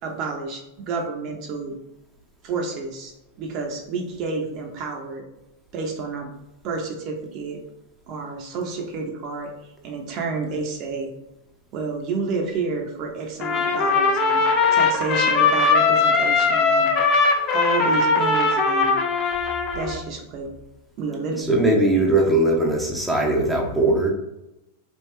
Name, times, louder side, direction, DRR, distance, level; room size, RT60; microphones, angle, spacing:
voice 1, 0.0-1.8 2.4-3.1 3.4-5.2 5.7-6.3 6.6-7.6 8.1-9.5 9.8-11.1 11.7-14.4 14.7-16.9 17.5-19.0 19.7-20.5 21.0-22.1, right 4 dB, 45° right, 1 dB, 0.7 m, -30 dB
Trumpet, 13.4-20.0, left 4 dB, 40° left, 0.6 m, -20 dB
voice 2, 21.4-24.1, right 2 dB, ahead, -2 dB, 0.7 m, -20 dB
3.5 x 2.4 x 3.2 m, 0.90 s
hypercardioid pair, 115°, 0 cm